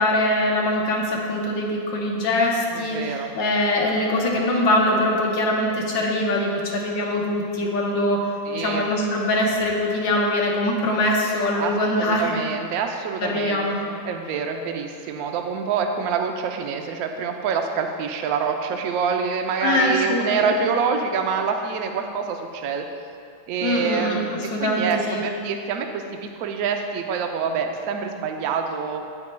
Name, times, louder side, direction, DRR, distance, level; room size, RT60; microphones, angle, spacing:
voice 1, 0.0-8.3 8.5-12.3 13.2-13.8 19.6-20.4 23.6-24.2 24.5-25.2, left 1 dB, 70° left, -1 dB, 1.6 m, -22 dB
voice 2, 2.7-3.3 8.5-8.8 11.6-11.7 12.1-22.8 23.5-29.0, right 6 dB, 75° right, 4 dB, 0.8 m, -26 dB
9.5 x 8.4 x 2.2 m, 2.5 s
omnidirectional pair, 2.2 m